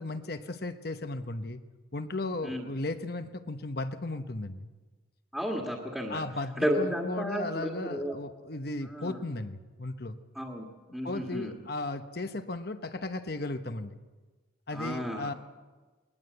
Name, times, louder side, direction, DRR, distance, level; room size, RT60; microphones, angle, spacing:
voice 1, 0.0-1.6 1.9-4.7 6.1-10.2 11.0-14.0 14.7-15.3, left 2 dB, 55° left, 9 dB, 1.0 m, -35 dB
voice 2, 5.3-6.2 6.6-8.2 8.8-9.2 10.4-10.7 10.9-11.5 14.7-15.3, equal, ahead, -2 dB, 1.8 m, -32 dB
21.0 x 20.5 x 8.0 m, 1.3 s
head